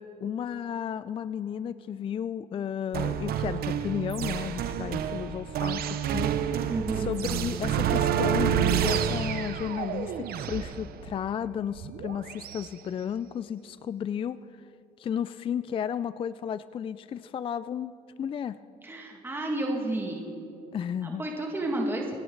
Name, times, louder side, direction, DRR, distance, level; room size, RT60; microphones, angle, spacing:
voice 1, 0.0-6.7 7.0-14.4 15.0-17.9 18.2-18.6 20.7-21.2, left 8 dB, 30° left, 15 dB, 0.3 m, -33 dB
sound 1, 2.9-12.7, right 9 dB, 65° right, 0.8 m, -29 dB
voice 2, 6.7-7.1 18.8-20.3 21.0-22.1, right 1 dB, 15° right, 0 dB, 2.1 m, -31 dB
27.5 x 10.0 x 3.9 m, 2.7 s
cardioid pair, 110°, 17 cm